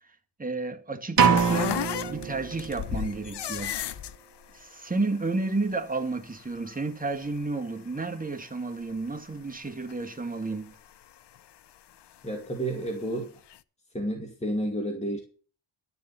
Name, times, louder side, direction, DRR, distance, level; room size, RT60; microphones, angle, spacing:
voice 1, 0.4-1.8 2.1-3.9 4.5-10.8, right 3 dB, 20° right, 1.9 m, -31 dB
sound 1, 1.2-9.6 9.9-11.5 12.0-13.2 13.5-13.6, left 10 dB, 65° left, 0.7 m, -36 dB
sound 2, 1.2-3.1, right 6 dB, 50° right, 1.3 m, -24 dB
voice 2, 12.2-13.4 13.9-15.2, right 1 dB, 15° left, 2.3 m, -31 dB
11.5 x 7.0 x 6.9 m
cardioid pair, 75°, 45 cm